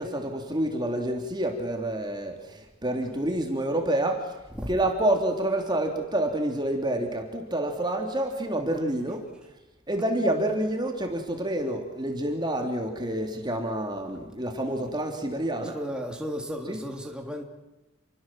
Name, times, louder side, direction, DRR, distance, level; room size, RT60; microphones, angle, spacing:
voice 1, 0.0-4.3 4.7-9.3 9.9-15.8 16.7-16.8, right 1 dB, 25° right, 3.2 m, -28 dB
voice 2, 15.5-17.4, equal, 5° right, 3.3 m, -34 dB
30.0 x 23.0 x 7.6 m
head